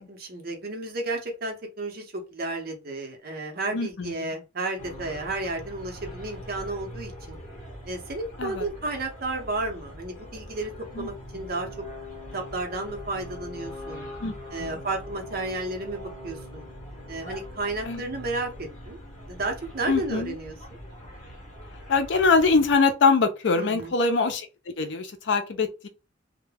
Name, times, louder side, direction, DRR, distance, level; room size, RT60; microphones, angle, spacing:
voice 1, 0.1-7.4 7.9-11.7 12.3-14.1 14.5-16.7 17.1-19.0 19.3-20.5 23.6-23.9, right 2 dB, 55° right, 0.8 m, -32 dB
voice 2, 3.7-4.3 8.4-8.7 10.9-11.1 11.3-11.5 14.2-14.8 17.8-18.0 19.9-20.4 21.9-24.5 24.8-25.9, left 4 dB, 70° left, 0.5 m, -23 dB
sound 1, 4.8-22.8, equal, 40° left, 1.1 m, -42 dB
2.2 x 2.2 x 3.2 m
head